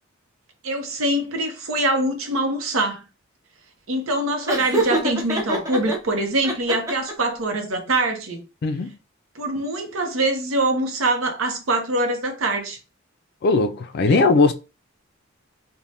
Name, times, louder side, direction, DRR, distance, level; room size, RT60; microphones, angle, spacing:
voice 1, 0.6-3.1 3.9-8.4 9.3-12.8 14.1-14.2, right 2 dB, 80° right, 0.7 m, -24 dB
Laughter, 4.5-6.0 6.4-7.3, right 2 dB, 15° right, 0.5 m, -25 dB
voice 2, 8.6-9.0 13.4-14.5, left 3 dB, 50° left, 0.3 m, -18 dB
3.2 x 2.1 x 2.6 m
head